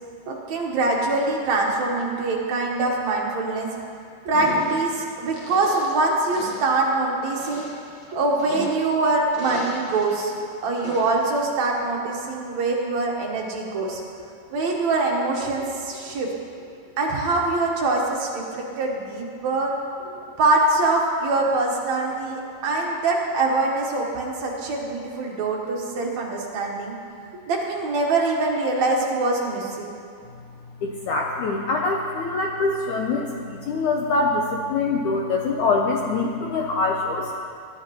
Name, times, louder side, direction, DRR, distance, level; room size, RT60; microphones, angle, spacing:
voice 1, 0.3-3.7 4.3-7.7 8.1-10.4 10.6-14.0 14.5-16.3 17.0-19.7 20.4-26.9 27.5-29.9, right 2 dB, 60° right, -2 dB, 2.1 m, -24 dB
sound 1, 4.3-5.0 5.3-6.1 6.3-6.8 7.3-9.0 9.3-10.2 10.8-11.2, left 1 dB, 60° left, 1.2 m, -36 dB
voice 2, 30.8-37.3, left 3 dB, 85° left, 0 dB, 1.7 m, -24 dB
20.0 x 11.0 x 3.0 m, 2.3 s
omnidirectional pair, 4.4 m